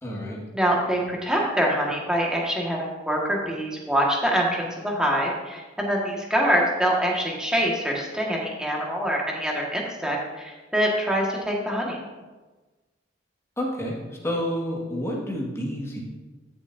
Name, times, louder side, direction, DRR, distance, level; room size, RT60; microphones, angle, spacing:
voice 1, 0.0-0.4 13.6-14.0 14.2-16.0, equal, 15° left, -3 dB, 1.8 m, -29 dB
voice 2, 0.5-12.0, equal, 5° right, -2 dB, 1.7 m, -25 dB
14.0 x 7.2 x 2.7 m, 1.2 s
head